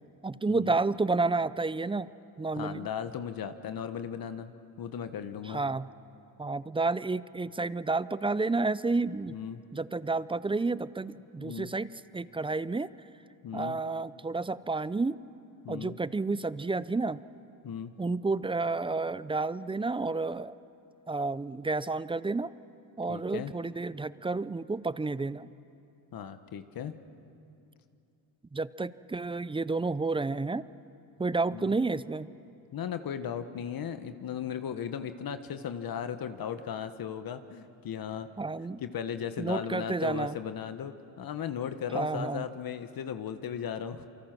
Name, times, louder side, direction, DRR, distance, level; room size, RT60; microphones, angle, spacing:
voice 1, 0.0-2.1 2.4-2.9 5.5-5.9 6.4-9.3 9.7-12.9 13.5-15.2 15.7-17.2 18.0-20.5 21.1-22.5 23.0-25.5 28.5-30.7 31.2-32.3 38.4-38.8 39.4-40.3 41.9-42.4, right 3 dB, 10° right, 17 dB, 0.5 m, -30 dB
voice 2, 2.5-5.6 9.3-9.6 11.4-11.7 13.4-13.8 15.6-15.9 17.6-17.9 23.1-23.5 26.1-26.9 31.5-31.8 32.7-38.3 38.8-44.1, left 8 dB, 50° left, 9 dB, 1.4 m, -36 dB
28.0 x 24.5 x 6.1 m, 2.6 s
supercardioid pair, 75°, 44 cm